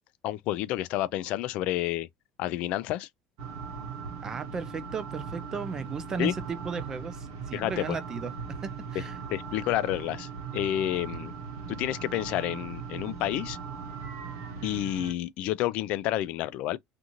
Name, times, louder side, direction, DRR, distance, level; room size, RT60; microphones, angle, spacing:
voice 1, 0.2-2.1 2.4-3.1 6.2-6.3 7.5-7.8 9.3-10.3 10.5-11.3 11.7-13.6 14.6-16.8, left 14 dB, 60° left, 0.3 m, -29 dB
sound 1, 3.4-15.1, right 6 dB, 80° right, 1.0 m, -39 dB
voice 2, 4.2-9.2 10.9-11.0, right 5 dB, 25° right, 0.5 m, -36 dB
2.5 x 2.4 x 2.9 m
cardioid pair, 140°, 2 cm